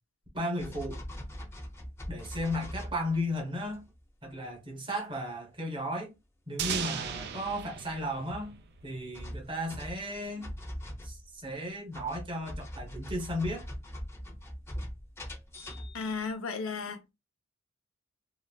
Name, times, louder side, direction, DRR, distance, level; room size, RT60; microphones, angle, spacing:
voice 1, 0.3-1.0 2.1-3.8 4.2-6.1 6.5-10.5 11.0-13.6, left 1 dB, 25° right, 0.9 m, -35 dB
sound 1, 0.6-3.4 3.7-4.0 7.6-7.7 8.1-8.5 9.1-11.6 11.9-16.3, equal, 15° left, 0.6 m, -42 dB
sound 2, 6.6-9.4, right 7 dB, 55° right, 0.4 m, -37 dB
voice 2, 15.9-17.1, left 4 dB, 85° left, 0.6 m, -34 dB
3.8 x 2.0 x 2.2 m
head